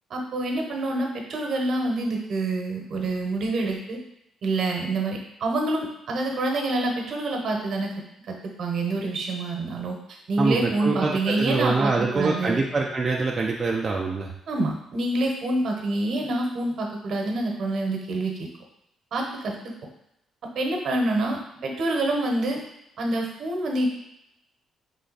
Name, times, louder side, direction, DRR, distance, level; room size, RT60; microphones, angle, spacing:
voice 1, 0.1-4.0 4.4-7.9 8.3-12.6 14.5-18.5 19.1-19.7 20.4-22.6 23.0-23.9, right 2 dB, 65° right, 1 dB, 1.0 m, -27 dB
voice 2, 10.4-14.3, right 3 dB, 35° right, -1 dB, 0.5 m, -25 dB
3.8 x 3.3 x 4.0 m, 0.83 s
cardioid pair, 90°, 0 cm